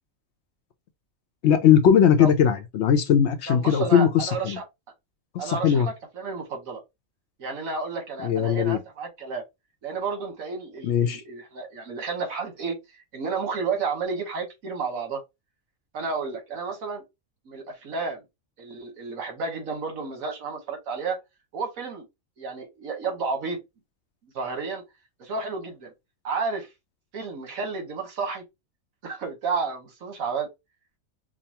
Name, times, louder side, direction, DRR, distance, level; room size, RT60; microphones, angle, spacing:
voice 1, 1.4-4.6 5.3-5.9 8.2-8.8 10.8-11.2, left 8 dB, 65° left, 0.8 m, -19 dB
voice 2, 3.5-4.6 5.4-6.8 7.4-9.4 9.8-12.8 13.1-15.2 15.9-17.0 17.5-18.2 18.6-21.2 21.5-22.0 22.4-23.6 24.3-24.8 25.2-25.9 26.2-26.7 27.1-28.4 29.0-30.5, right 4 dB, 85° right, 1.6 m, -31 dB
5.2 x 2.0 x 2.8 m
omnidirectional pair, 1.4 m